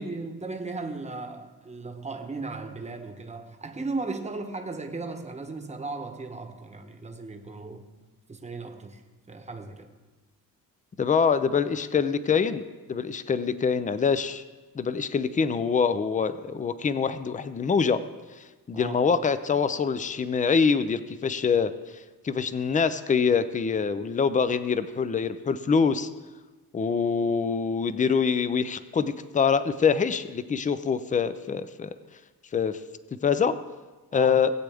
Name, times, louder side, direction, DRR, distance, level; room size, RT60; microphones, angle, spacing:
voice 1, 0.0-7.8 8.3-9.0 9.3-9.9 18.7-19.0 34.1-34.4, right 3 dB, 20° right, 5 dB, 1.0 m, -36 dB
voice 2, 11.0-12.6 12.9-14.4 14.8-18.0 18.7-21.7 22.2-26.1 26.7-31.9 32.5-32.8 33.2-33.6 34.1-34.5, left 6 dB, 20° left, 13 dB, 0.5 m, -25 dB
19.0 x 8.2 x 3.5 m, 1.3 s
cardioid pair, 120°, 36 cm